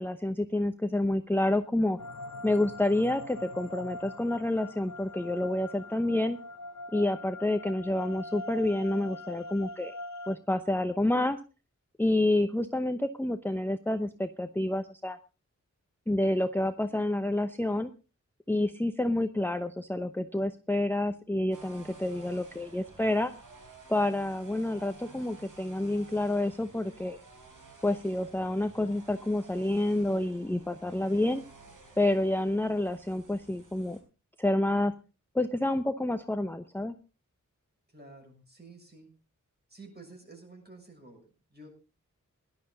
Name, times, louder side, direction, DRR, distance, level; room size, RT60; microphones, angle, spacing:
voice 1, 0.0-2.0 2.4-6.4 6.9-9.9 10.3-11.4 12.0-15.2 16.1-17.9 18.5-23.3 23.9-27.2 27.8-31.4 32.0-34.0 34.4-34.9 35.3-36.9, left 1 dB, 5° left, 8 dB, 0.8 m, -28 dB
sound 1, 2.0-10.3, left 2 dB, 65° left, 1.0 m, -43 dB
sound 2, 21.5-34.0, right 3 dB, 90° right, 4.3 m, -53 dB
voice 2, 37.9-39.1 39.7-41.7, right 2 dB, 30° right, 2 dB, 6.7 m, -51 dB
17.5 x 12.0 x 3.9 m, 0.31 s
wide cardioid pair, 100°, 31 cm